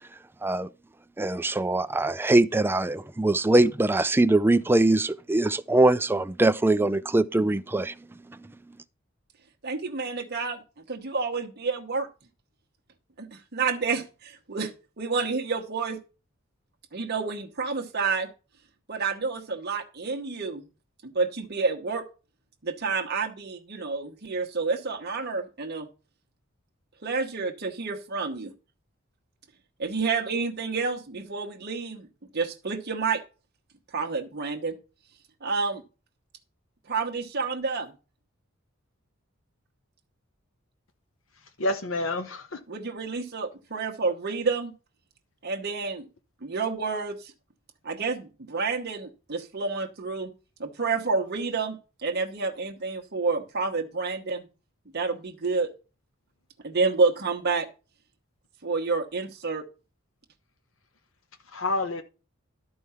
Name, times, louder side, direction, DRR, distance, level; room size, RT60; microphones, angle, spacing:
voice 1, 1.2-8.0 8.3-8.5, right 2 dB, 10° right, 0.4 m, -22 dB
voice 2, 9.6-10.6 10.9-12.1 13.2-14.7 15.0-16.0 16.9-18.3 18.9-20.6 21.0-22.0 22.6-25.9 27.0-28.5 29.8-32.1 32.3-33.2 33.9-34.7 35.4-35.8 36.9-37.9 42.7-44.7 45.4-46.1 46.4-47.3 47.8-50.3 50.6-51.8 52.0-54.5 54.9-55.7 56.6-57.7 58.6-59.6, right 4 dB, 50° right, 1.0 m, -29 dB
voice 3, 41.6-42.6 61.5-62.0, left 2 dB, 65° left, 0.9 m, -28 dB
12.5 x 4.8 x 5.6 m
head